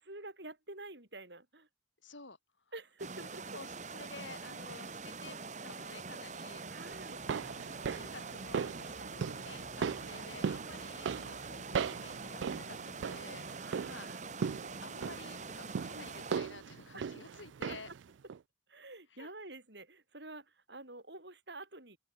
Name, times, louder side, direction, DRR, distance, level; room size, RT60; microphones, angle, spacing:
voice 1, 0.0-1.7 2.7-3.6 4.7-5.0 6.7-7.2 9.0-9.4 11.4-11.6 13.6-14.2 15.9-16.1 16.9-17.3 17.7-17.8 18.7-22.0, right 2 dB, 65° right, 6.2 m, -49 dB
voice 2, 2.0-2.4 3.5-6.6 7.1-7.2 7.7-13.5 13.8-14.1 14.8-17.9 19.2-19.3, left 3 dB, 85° left, 5.4 m, -52 dB
sound 1, 3.0-16.4, right 4 dB, 40° right, 2.1 m, -44 dB
sound 2, 6.9-12.4, left 1 dB, 35° left, 2.6 m, -58 dB
sound 3, 7.0-18.0 18.3-18.4, right 6 dB, 80° right, 0.4 m, -39 dB
open air
head